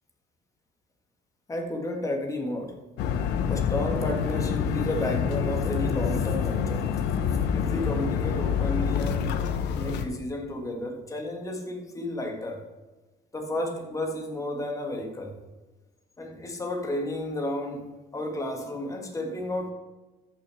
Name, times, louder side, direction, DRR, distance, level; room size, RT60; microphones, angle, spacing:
voice 1, 1.5-2.8 3.5-6.9 7.5-9.4 9.7-12.6 13.3-15.4 16.2-17.9 18.1-19.7, left 1 dB, 20° left, 2 dB, 1.7 m, -32 dB
sound 1, 3.0-10.1, left 7 dB, 85° left, 0.8 m, -27 dB
14.0 x 6.1 x 3.5 m, 1.2 s
cardioid pair, 110°, 17 cm